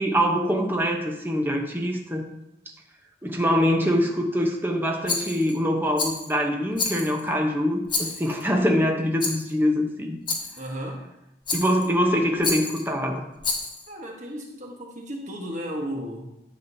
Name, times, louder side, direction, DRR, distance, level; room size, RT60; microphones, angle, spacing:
voice 1, 0.0-2.3 3.2-10.2 11.5-13.3, equal, 10° right, 2 dB, 0.9 m, -24 dB
Rattle, 5.1-5.6 6.0-6.3 6.8-7.3 7.9-8.4 9.2-9.5 10.3-10.7 11.5-11.9 12.4-12.8 13.4-13.9, left 3 dB, 25° left, 1.2 m, -29 dB
voice 2, 10.6-11.0 13.9-16.3, equal, 40° right, 0 dB, 1.3 m, -34 dB
11.0 x 7.4 x 2.8 m, 0.87 s
head